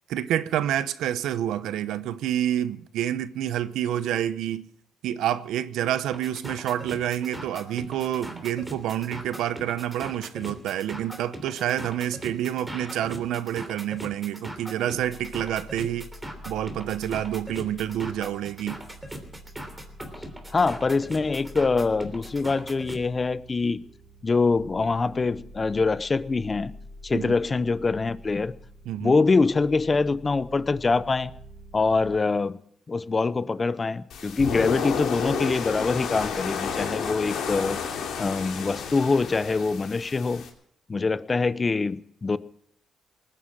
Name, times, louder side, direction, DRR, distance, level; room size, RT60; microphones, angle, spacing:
voice 1, 0.1-4.7 5.0-16.1 16.4-18.8 27.1-27.4 28.9-29.2 36.8-36.9, right 11 dB, 85° right, 0.9 m, -28 dB
sound 1, 6.1-23.0, equal, 10° right, 3.2 m, -40 dB
sound 2, 15.0-32.2, equal, 10° left, 5.3 m, -47 dB
voice 2, 20.5-23.8 24.2-26.7 27.0-28.5 29.0-31.3 31.7-32.6 32.9-40.4 40.9-42.4, left 4 dB, 30° left, 0.7 m, -24 dB
sound 3, 34.1-40.5, left 6 dB, 75° left, 3.1 m, -31 dB
19.5 x 9.7 x 7.4 m
cardioid pair, 90°, 0 cm